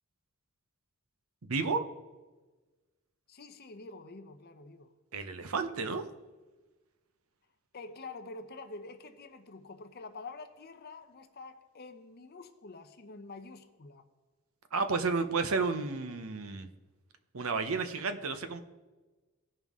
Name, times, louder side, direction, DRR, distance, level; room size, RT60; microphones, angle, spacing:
voice 1, 1.4-1.8 5.1-6.0 14.7-16.7 17.3-18.6, right 4 dB, 70° right, 9 dB, 0.8 m, -31 dB
voice 2, 3.3-4.9 7.7-14.0, left 3 dB, 45° left, 7 dB, 0.7 m, -47 dB
16.0 x 5.4 x 3.6 m, 1.2 s
head